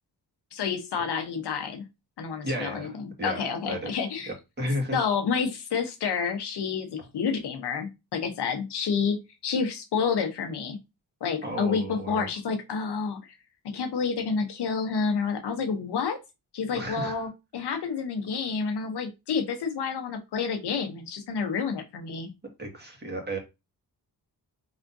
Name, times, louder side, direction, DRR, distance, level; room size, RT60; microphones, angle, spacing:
voice 1, 0.5-1.8 2.2-4.3 4.9-9.2 9.4-10.8 11.2-13.2 13.7-16.2 16.5-22.3, left 5 dB, 80° left, 5 dB, 1.0 m, -29 dB
voice 2, 2.4-3.9 4.3-5.1 11.4-12.3 16.7-17.2 22.6-23.4, equal, 25° right, 1 dB, 1.8 m, -33 dB
4.2 x 3.5 x 2.6 m, 0.24 s
cardioid pair, 70°, 39 cm